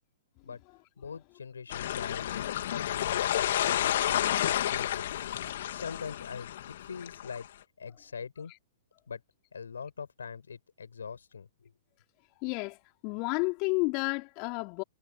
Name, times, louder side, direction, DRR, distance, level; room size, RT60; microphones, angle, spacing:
voice 1, 1.0-5.1 5.7-7.5 7.8-8.5 9.1-9.2 9.5-11.5, left 6 dB, 70° left, 7.6 m, -42 dB
sound 1, 1.7-7.5, left 12 dB, 55° left, 2.9 m, -31 dB
voice 2, 12.4-12.8 13.0-14.8, left 31 dB, 35° left, 3.3 m, -31 dB
figure-of-eight pair, 110°, 0 cm